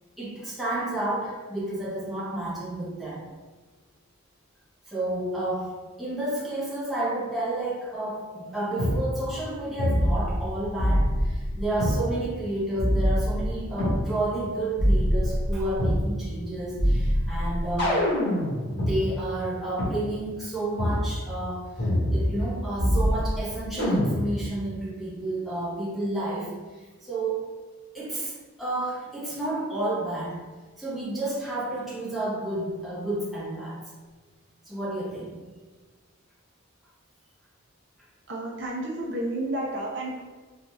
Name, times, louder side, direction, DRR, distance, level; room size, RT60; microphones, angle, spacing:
voice 1, 0.2-3.2 4.9-18.0 18.7-27.6 27.9-28.3 28.6-30.4 30.8-33.8 34.7-35.3, right 1 dB, ahead, -9 dB, 0.8 m, -31 dB
sound 1, 8.8-9.0 9.8-10.5 10.8-12.0 12.8-14.0 14.8-16.0 16.8-18.9 19.8-19.9 20.8-21.0 21.8-22.5 22.8-23.4 23.8-24.4, equal, 50° left, 1.4 m, -24 dB
voice 2, 38.3-40.2, right 1 dB, 55° right, -2 dB, 0.5 m, -31 dB
4.1 x 2.8 x 2.3 m, 1.3 s
head